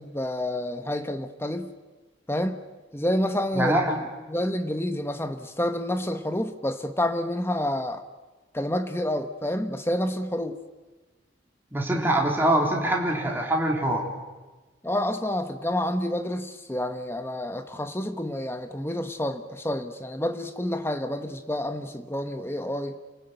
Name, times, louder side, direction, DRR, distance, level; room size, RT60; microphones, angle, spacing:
voice 1, 0.0-1.7 2.3-2.6 2.9-3.8 4.3-8.1 8.5-10.6 14.8-23.0, left 1 dB, 10° left, 8 dB, 1.2 m, -29 dB
voice 2, 3.6-4.0 11.7-14.1, right 1 dB, 10° right, -1 dB, 3.7 m, -24 dB
28.5 x 18.5 x 9.2 m, 1.2 s
head